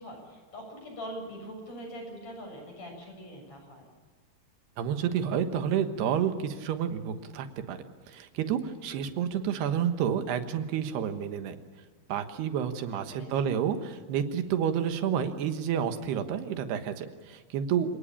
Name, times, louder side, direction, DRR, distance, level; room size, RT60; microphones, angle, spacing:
voice 1, 0.0-3.9 8.7-8.8 13.1-13.6, equal, 45° left, 2 dB, 8.7 m, -43 dB
voice 2, 4.8-7.8 8.1-11.6 12.1-18.0, right 8 dB, 85° right, 8 dB, 3.5 m, -30 dB
29.0 x 19.0 x 8.8 m, 1.5 s
omnidirectional pair, 4.6 m